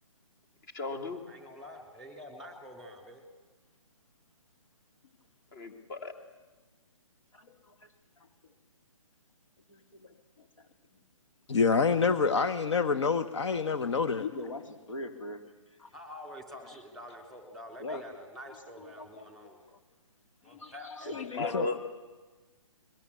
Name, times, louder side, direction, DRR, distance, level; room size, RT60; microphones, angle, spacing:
voice 1, 0.7-1.2 5.5-6.1 21.4-21.8, left 3 dB, 35° left, 6 dB, 2.7 m, -35 dB
voice 2, 1.3-3.2 15.9-19.6 20.4-21.5, equal, ahead, 6 dB, 3.2 m, -47 dB
voice 3, 7.3-8.3 9.7-11.0 14.2-15.5 15.8-15.9 16.7-16.8 17.8-18.1 18.5-19.3 20.4-21.8, left 3 dB, 75° left, 7 dB, 3.5 m, -42 dB
voice 4, 11.5-14.2 21.5-21.7, left 5 dB, 55° left, 14 dB, 1.4 m, -26 dB
22.0 x 21.5 x 8.5 m, 1.3 s
hypercardioid pair, 155°, 17 cm